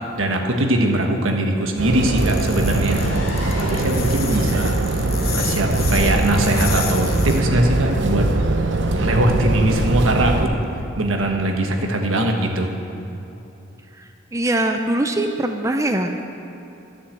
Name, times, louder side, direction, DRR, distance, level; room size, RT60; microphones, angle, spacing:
voice 1, 0.2-3.0 3.4-4.8 5.3-8.3 9.0-10.5 11.0-12.7, right 1 dB, 85° right, 3 dB, 1.3 m, -21 dB
sound 1, 1.8-10.5, right 2 dB, 60° right, 0.8 m, -21 dB
sound 2, 2.2-7.4, left 8 dB, 50° left, 1.0 m, -31 dB
sound 3, 2.6-6.4, left 1 dB, 85° left, 2.5 m, -35 dB
voice 2, 14.3-16.2, right 1 dB, 15° right, 5 dB, 0.5 m, -21 dB
13.0 x 6.8 x 7.9 m, 2.9 s
head